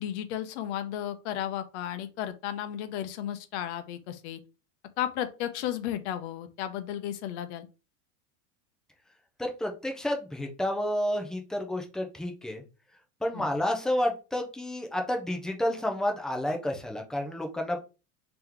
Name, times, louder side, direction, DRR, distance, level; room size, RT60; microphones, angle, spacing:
voice 1, 0.0-4.4 5.0-7.7 13.3-13.5, left 11 dB, 70° left, 10 dB, 0.7 m, -34 dB
voice 2, 9.4-12.6 13.2-17.8, left 1 dB, ahead, 3 dB, 0.3 m, -30 dB
3.4 x 3.0 x 3.6 m, 0.32 s
supercardioid pair, 145°, 36 cm